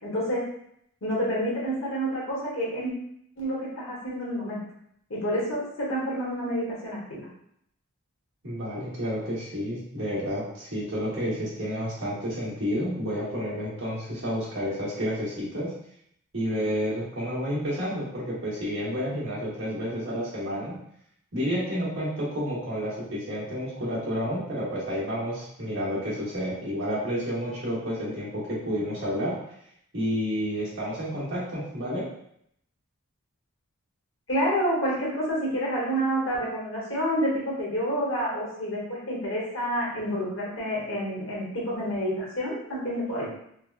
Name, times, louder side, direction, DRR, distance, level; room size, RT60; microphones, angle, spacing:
voice 1, 0.0-0.4 1.0-2.9 3.4-4.6 5.1-7.3 34.3-43.3, equal, 60° left, -6 dB, 1.1 m, -28 dB
voice 2, 8.4-15.7 16.3-20.7 21.3-29.3 29.9-32.0, equal, 55° right, -8 dB, 1.2 m, -30 dB
3.3 x 2.1 x 2.4 m, 0.72 s
head